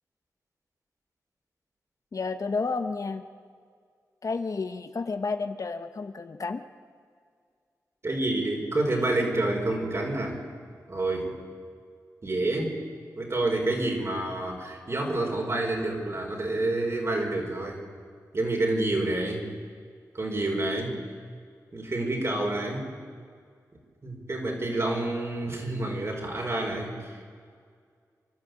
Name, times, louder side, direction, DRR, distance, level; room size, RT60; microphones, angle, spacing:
voice 1, 2.1-3.2 4.2-6.6, left 4 dB, 55° left, 8 dB, 1.1 m, -31 dB
voice 2, 8.0-10.4 10.9-11.3 12.2-12.8 13.2-17.8 18.3-19.5 20.1-21.0 21.7-22.9 24.0-27.2, right 2 dB, 40° right, 1 dB, 5.0 m, -28 dB
29.0 x 12.5 x 8.0 m, 2.1 s
cardioid pair, 70°, 7 cm